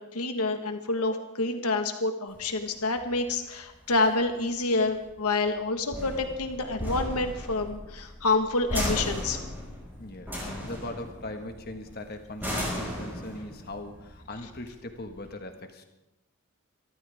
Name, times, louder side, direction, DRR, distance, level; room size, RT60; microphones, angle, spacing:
voice 1, 0.0-9.4, left 3 dB, 90° left, 6 dB, 1.5 m, -28 dB
sound 1, 2.3-15.3, equal, 10° right, 5.6 m, -36 dB
voice 2, 10.0-15.8, left 1 dB, 45° left, 5 dB, 1.6 m, -40 dB
23.0 x 14.0 x 3.6 m, 0.98 s
head